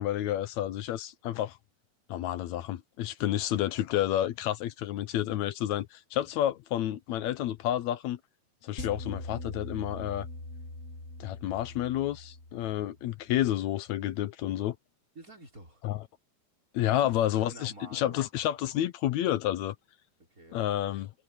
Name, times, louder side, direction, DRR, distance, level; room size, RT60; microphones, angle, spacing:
voice 1, 0.0-1.6 2.1-8.2 8.6-10.3 11.2-14.8 15.8-16.0 16.7-19.7 20.5-21.1, left 12 dB, 75° left, 1.7 m, -30 dB
voice 2, 3.2-3.7 15.2-15.8 16.9-18.3 20.2-20.7, right 2 dB, 20° right, 5.3 m, -49 dB
sound 1, 8.8-13.1, left 2 dB, 35° left, 1.0 m, -42 dB
omnidirectional pair, 4.1 m